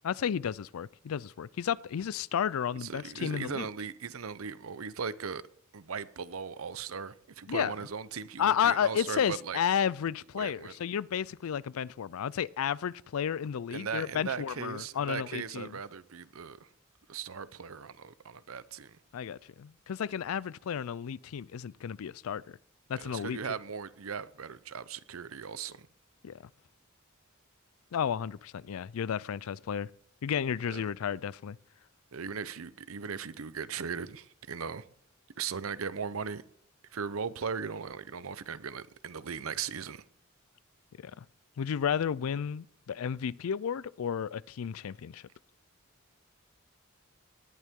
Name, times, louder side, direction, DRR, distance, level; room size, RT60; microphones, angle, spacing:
voice 1, 0.0-3.7 7.5-7.7 8.4-15.7 19.1-22.6 22.9-23.6 26.2-26.4 27.9-29.9 30.2-31.6 41.0-41.3 41.6-45.2, left 8 dB, 85° left, 0.4 m, -32 dB
voice 2, 2.8-5.4 5.7-9.6 10.3-10.8 13.7-16.7 17.1-19.0 22.9-25.9 30.7-30.9 32.1-34.9 35.4-36.4 36.9-40.0, right 6 dB, 85° right, 0.7 m, -38 dB
19.0 x 11.0 x 3.7 m
head